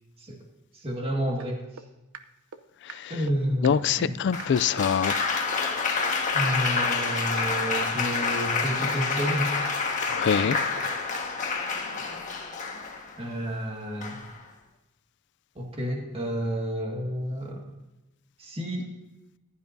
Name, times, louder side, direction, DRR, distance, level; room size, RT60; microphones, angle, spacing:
voice 1, 0.8-1.6 3.1-4.1 6.3-9.5 13.2-14.1 15.6-17.6 18.4-18.9, equal, 25° right, 1.9 m, -30 dB
sound 1, 1.4-1.5 1.8-1.9 2.1-2.2 2.5-2.6 2.9-3.0 3.3-3.4 3.6-3.7 4.0-4.1 4.4-4.5 4.8-4.9 5.1-5.2 5.5-5.6 5.9-6.0 6.3-6.4 6.6-6.7 7.0-7.1 7.4-7.5 7.8-7.9 8.1-8.2 8.5-8.6 8.9-9.0 9.3-9.4 9.6-9.7 10.0-10.1 10.4-10.5 10.8-10.9 11.1-11.2, right 6 dB, 80° right, 0.7 m, -40 dB
voice 2, 3.6-5.1 10.1-10.6, left 7 dB, 55° left, 0.4 m, -24 dB
Applause, 4.3-13.2 14.0-14.4, left 4 dB, 35° left, 1.5 m, -28 dB
15.0 x 11.0 x 2.7 m
head